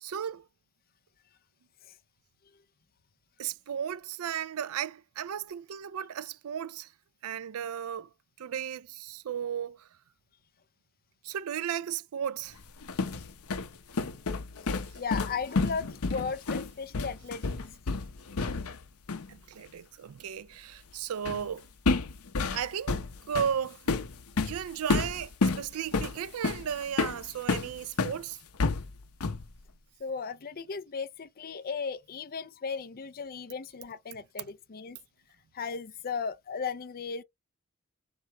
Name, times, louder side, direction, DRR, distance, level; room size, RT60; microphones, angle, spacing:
voice 1, 0.0-0.4 3.4-6.9 7.2-8.1 8.4-9.9 11.2-12.6 19.3-21.7 22.5-23.0 23.3-23.9 24.4-28.4, right 8 dB, 75° right, 0.4 m, -35 dB
sound 1, 12.6-18.8 19.1-19.3 21.3-21.5 21.9-28.2 28.6-29.5, left 3 dB, 80° left, 0.8 m, -30 dB
voice 2, 14.7-17.5 30.0-35.0 35.5-37.2, left 5 dB, 45° left, 0.5 m, -36 dB
5.0 x 3.3 x 2.9 m
head